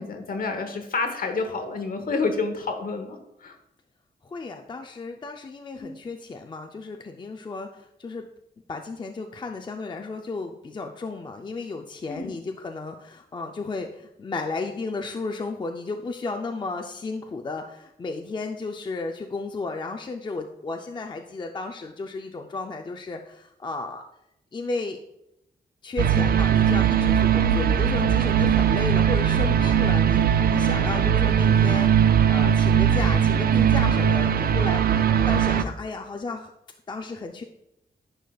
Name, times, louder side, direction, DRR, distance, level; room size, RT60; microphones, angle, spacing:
voice 1, 0.0-3.6 5.7-6.0 12.1-12.3 27.4-27.6, left 4 dB, 55° left, 6 dB, 1.0 m, -29 dB
voice 2, 4.2-8.3 8.7-24.0 24.5-25.0 25.8-36.5 36.9-37.4, left 3 dB, 25° left, 3 dB, 0.4 m, -33 dB
sound 1, 26.0-35.6, right 8 dB, 60° right, 0.4 m, -20 dB
10.0 x 5.0 x 2.3 m, 0.82 s
wide cardioid pair, 115°, 17 cm